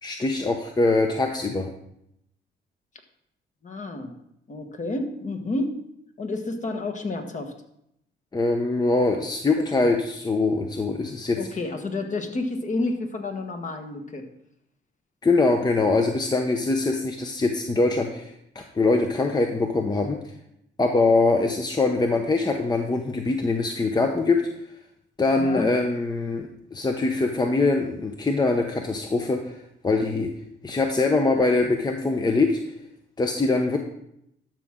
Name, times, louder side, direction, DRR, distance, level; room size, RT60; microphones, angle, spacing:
voice 1, 0.0-1.7 8.3-11.4 15.2-20.2 20.8-24.4 25.2-29.6 29.8-30.3 30.6-32.7 33.2-33.8, left 3 dB, 20° left, 4 dB, 0.8 m, -23 dB
voice 2, 3.6-4.1 4.5-5.7 6.2-7.5 9.6-9.9 11.3-14.2 25.4-25.7, left 2 dB, 40° left, 4 dB, 1.5 m, -30 dB
12.0 x 6.1 x 3.7 m, 0.77 s
cardioid pair, 90°, 20 cm